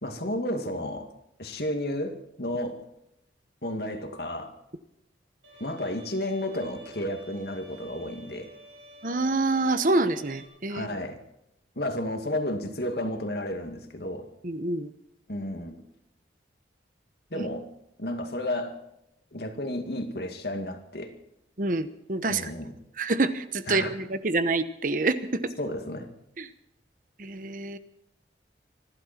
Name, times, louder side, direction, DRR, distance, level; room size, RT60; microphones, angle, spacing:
voice 1, 0.0-1.1 1.4-2.8 3.6-4.5 5.6-8.5 10.7-11.2 11.8-14.3 15.3-15.8 17.3-17.7 18.0-18.8 19.3-21.1 22.3-22.7 23.7-23.9 25.6-26.1, left 1 dB, 60° left, 6 dB, 2.3 m, -32 dB
Bowed string instrument, 5.4-10.5, right 1 dB, 90° right, 7.5 m, -50 dB
voice 2, 9.0-10.9 14.4-14.9 17.3-17.5 21.6-22.5 23.0-25.5 26.4-26.5 27.2-27.8, right 2 dB, 45° right, 11 dB, 1.0 m, -27 dB
26.5 x 12.5 x 4.4 m, 0.81 s
head